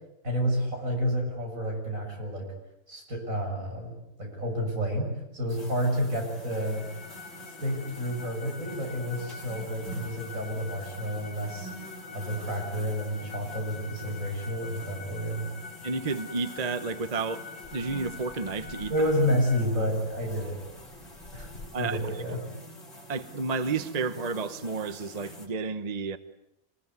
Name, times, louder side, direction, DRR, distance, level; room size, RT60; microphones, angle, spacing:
voice 1, 0.2-2.5 2.9-6.9 7.6-11.7 12.1-15.5 18.9-20.6 21.3-21.5 21.8-22.4, equal, 60° right, 1 dB, 7.3 m, -30 dB
sound 1, 5.5-25.5, equal, 55° left, 4.7 m, -46 dB
sound 2, 6.5-19.6, left 5 dB, 80° left, 3.1 m, -46 dB
voice 2, 15.8-17.4 17.7-18.9 21.7-22.0 22.3-22.4 23.1-26.2, right 4 dB, 30° right, 12 dB, 1.0 m, -31 dB
26.5 x 20.5 x 9.5 m, 0.85 s
omnidirectional pair, 1.5 m